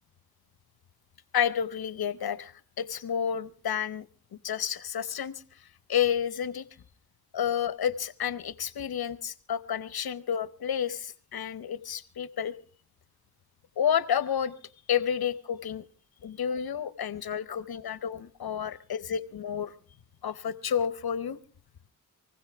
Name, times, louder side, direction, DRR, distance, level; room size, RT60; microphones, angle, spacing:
voice 1, 1.3-4.0 4.4-5.3 5.9-6.6 7.3-12.6 13.8-14.5 14.9-15.8 16.2-19.7 20.2-21.4, left 8 dB, 90° left, 16 dB, 0.9 m, -30 dB
24.5 x 15.5 x 3.4 m, 0.40 s
wide cardioid pair, 90°, 36 cm